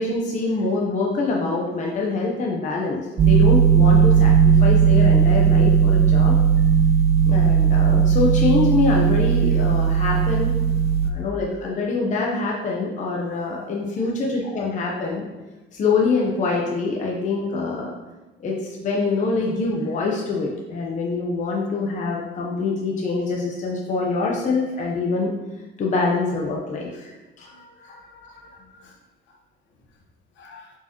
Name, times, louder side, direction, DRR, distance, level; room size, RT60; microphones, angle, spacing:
voice 1, 0.0-6.4 7.3-10.6 11.0-15.3 15.7-17.9 18.4-25.3 25.8-27.5, left 3 dB, 35° left, -2 dB, 0.8 m, -25 dB
sound 1, 3.2-11.1, right 7 dB, 30° right, 0.5 m, -16 dB
voice 2, 27.4-29.0 29.3-29.4 30.4-30.7, left 3 dB, 65° left, 1 dB, 1.3 m, -49 dB
7.8 x 4.7 x 2.9 m, 1.1 s
cardioid pair, 150°, 21 cm